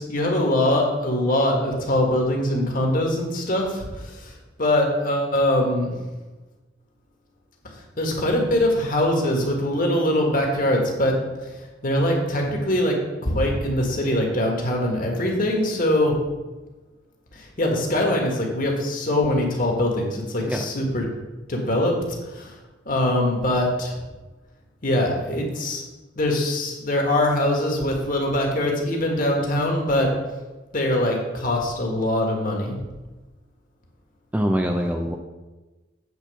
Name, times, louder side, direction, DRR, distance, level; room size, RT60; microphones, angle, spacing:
voice 1, 0.0-4.3 4.6-6.0 8.0-11.2 11.8-13.0 13.2-16.2 17.3-21.1 21.5-21.9 22.3-22.5 22.8-24.0 24.8-25.8 26.1-30.1 30.7-32.8, left 1 dB, 45° left, 0 dB, 1.7 m, -22 dB
voice 2, 34.3-35.2, equal, 10° right, 3 dB, 0.4 m, -23 dB
8.3 x 4.2 x 6.9 m, 1.2 s
head